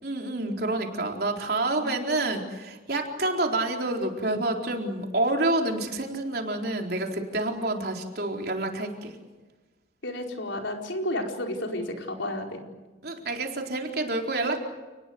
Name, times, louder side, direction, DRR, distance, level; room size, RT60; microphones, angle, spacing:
voice 1, 0.0-9.2 13.0-14.6, right 2 dB, 55° right, 2 dB, 4.2 m, -28 dB
voice 2, 10.0-12.6, left 1 dB, 85° left, 2 dB, 4.9 m, -31 dB
29.5 x 20.0 x 8.0 m, 1.2 s
head